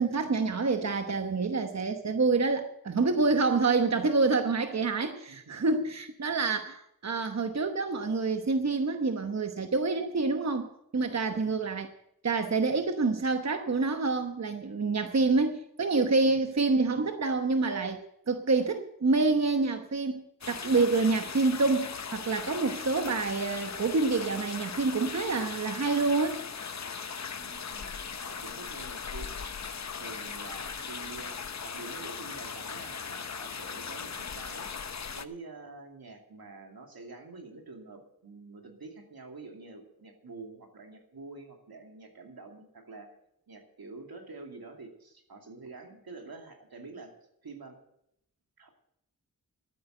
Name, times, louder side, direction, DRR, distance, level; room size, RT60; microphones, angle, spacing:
voice 1, 0.0-11.9 12.2-26.4, right 3 dB, 50° right, 6 dB, 1.0 m, -27 dB
voice 2, 5.3-5.6 11.4-11.6 16.2-16.5 27.4-28.0 28.2-29.4 30.0-31.4 31.6-34.7 35.1-43.1 43.5-47.1 47.4-47.8 48.6-48.7, right 3 dB, 85° right, 2 dB, 2.5 m, -47 dB
sound 1, 20.4-35.3, left 6 dB, 50° left, 0.7 m, -39 dB
12.5 x 9.1 x 7.7 m, 0.77 s
wide cardioid pair, 70°, 36 cm